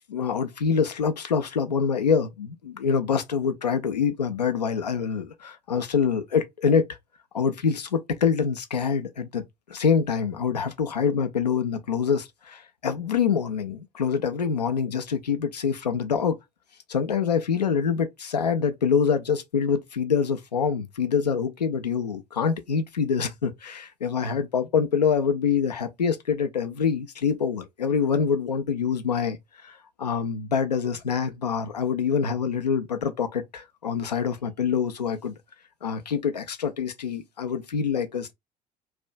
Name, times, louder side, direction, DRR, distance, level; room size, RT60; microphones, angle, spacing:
voice 1, 0.1-6.9 7.3-9.4 9.7-16.4 16.9-29.4 29.6-35.4 35.8-38.3, left 6 dB, 85° left, 0.4 m, -25 dB
2.4 x 2.1 x 2.4 m
figure-of-eight pair, 55°, 20 cm